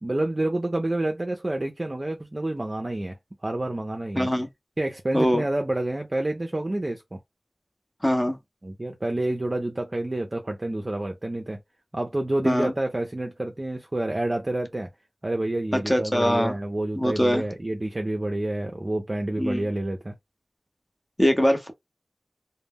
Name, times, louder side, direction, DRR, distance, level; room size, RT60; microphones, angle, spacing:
voice 1, 0.0-3.2 3.4-4.3 4.8-7.2 8.6-11.6 11.9-14.9 15.2-20.1, right 1 dB, 45° right, 0.4 m, -28 dB
voice 2, 4.2-4.5 5.1-5.4 8.0-8.4 12.4-12.7 15.7-16.6 16.9-17.4 19.4-19.7 21.2-21.7, equal, 20° left, 0.7 m, -22 dB
2.1 x 2.0 x 3.4 m
wide cardioid pair, 45°, 0 cm